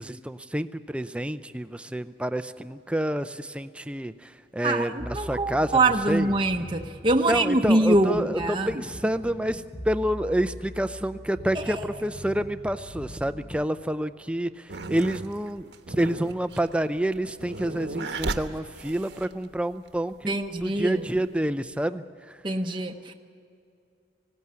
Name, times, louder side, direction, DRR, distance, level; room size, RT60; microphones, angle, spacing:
voice 1, 0.0-6.3 7.3-14.5 14.9-20.3 20.6-22.0, right 1 dB, 5° right, 11 dB, 0.5 m, -28 dB
voice 2, 4.6-8.8 11.5-11.8 20.3-21.0 22.4-23.1, right 2 dB, 25° right, 3 dB, 0.8 m, -24 dB
sound 1, 5.0-13.7, equal, 15° left, 1.0 m, -42 dB
sound 2, 14.7-19.6 20.3-21.2, right 3 dB, 70° right, 1.1 m, -35 dB
19.5 x 16.5 x 9.5 m, 2.5 s
head